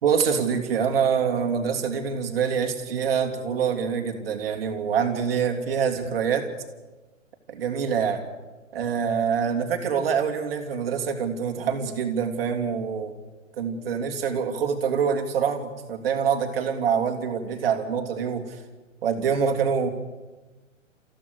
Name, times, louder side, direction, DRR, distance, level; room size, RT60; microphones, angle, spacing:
voice 1, 0.0-6.5 7.5-8.2 8.7-13.1 13.6-18.6 19.0-19.9, right 7 dB, 45° right, 5 dB, 3.1 m, -25 dB
28.5 x 15.5 x 6.7 m, 1.2 s
figure-of-eight pair, 125°, 39 cm